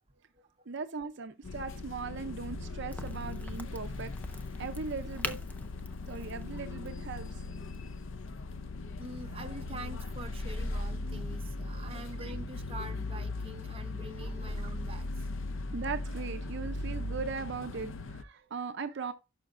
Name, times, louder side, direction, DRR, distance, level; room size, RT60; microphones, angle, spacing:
voice 1, 0.7-4.1 4.6-5.4 6.1-7.3 15.7-19.1, right 4 dB, 60° right, 0.6 m, -38 dB
sound 1, 1.4-18.2, left 2 dB, 75° left, 0.6 m, -38 dB
Crack, 2.9-8.3, left 1 dB, 10° left, 0.5 m, -45 dB
voice 2, 9.0-15.1, right 1 dB, 30° right, 0.9 m, -45 dB
11.0 x 6.3 x 2.5 m
head